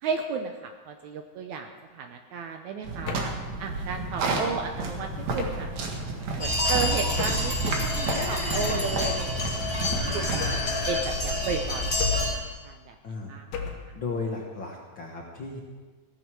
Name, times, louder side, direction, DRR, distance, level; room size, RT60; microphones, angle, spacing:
voice 1, 0.0-3.3 3.6-5.7 6.3-10.6 10.9-11.9 12.3-13.0 13.3-13.7, right 5 dB, 75° right, 5 dB, 1.9 m, -34 dB
sound 1, 2.8-10.5, right 3 dB, 60° right, 2.8 m, -32 dB
sound 2, 3.1-3.5 5.4-5.8 7.2-7.6 8.7-9.1 10.4-10.8 12.0-12.5 13.5-13.9, left 5 dB, 80° left, 3.0 m, -33 dB
sound 3, 6.4-12.3, left 1 dB, 15° left, 4.1 m, -28 dB
voice 2, 13.9-15.6, left 4 dB, 50° left, -1 dB, 1.6 m, -35 dB
16.5 x 13.5 x 4.7 m, 1.4 s
omnidirectional pair, 4.0 m